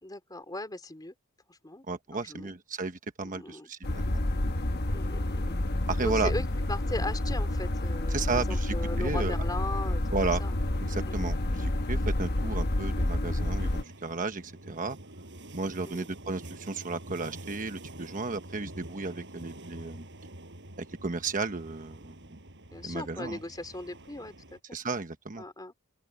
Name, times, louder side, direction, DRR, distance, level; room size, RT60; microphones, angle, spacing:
voice 1, 0.0-1.1 1.5-1.8 2.1-2.5 3.2-3.7 4.9-5.6 6.0-10.5 11.1-11.3 15.9-16.1 22.7-24.6 25.4-25.7, left 2 dB, 20° left, 3.6 m, -38 dB
voice 2, 1.9-4.2 5.9-6.3 8.1-9.4 10.1-10.4 10.8-15.0 15.5-20.0 20.8-22.4 22.8-23.4 24.7-25.4, right 3 dB, 40° right, 1.1 m, -34 dB
sound 1, 3.8-13.8, left 1 dB, 50° left, 1.2 m, -29 dB
sound 2, 13.6-24.6, right 1 dB, 55° right, 6.6 m, -47 dB
open air
head